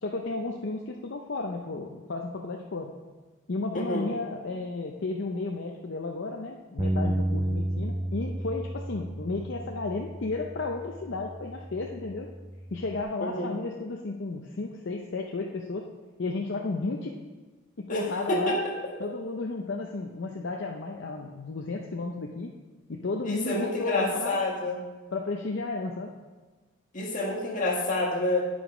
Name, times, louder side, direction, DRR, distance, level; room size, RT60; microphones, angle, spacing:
voice 1, 0.0-2.9 3.5-12.3 12.7-15.9 16.2-17.2 17.8-18.6 19.0-22.5 22.9-24.4 25.1-26.1, left 3 dB, 60° left, 1 dB, 0.6 m, -33 dB
voice 2, 3.7-4.1 13.2-13.5 17.9-18.0 18.3-18.7 23.2-24.8 26.9-28.4, left 1 dB, 40° left, -2 dB, 1.6 m, -28 dB
Bass guitar, 6.8-13.0, right 1 dB, 15° right, 0.4 m, -32 dB
9.8 x 5.1 x 5.0 m, 1.3 s
head